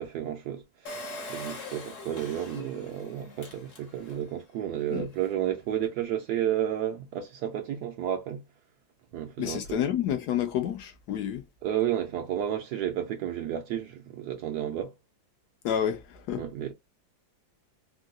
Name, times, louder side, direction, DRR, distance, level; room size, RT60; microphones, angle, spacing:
voice 1, 0.0-8.4 9.1-9.8 11.6-14.9 16.4-16.7, right 10 dB, 70° right, 1.0 m, -32 dB
Engine, 0.9-4.3 4.8-4.9 5.1-5.2, left 1 dB, 45° left, 1.3 m, -42 dB
voice 2, 9.4-11.4 15.6-16.4, left 9 dB, 70° left, 1.1 m, -29 dB
3.6 x 2.5 x 2.2 m
omnidirectional pair, 2.0 m